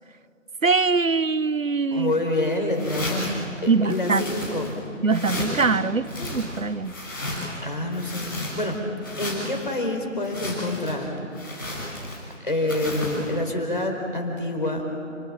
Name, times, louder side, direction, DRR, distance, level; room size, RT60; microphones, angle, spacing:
voice 1, 0.6-2.1 3.7-4.3 5.0-6.9, right 4 dB, 75° right, 17 dB, 0.9 m, -23 dB
voice 2, 1.9-3.4 3.6-4.8 7.6-8.8 9.2-11.1 12.4-14.9, left 1 dB, 40° left, 2 dB, 4.4 m, -27 dB
steps through dense brushwood - actions, 2.7-3.4 3.9-4.8 5.1-5.7 6.0-7.6 7.9-8.7 9.0-9.7 10.2-11.0 11.3-12.3 12.7-13.3, left 1 dB, 15° left, 6.4 m, -33 dB
30.0 x 19.5 x 8.9 m, 2.6 s
figure-of-eight pair, 175°, 40 cm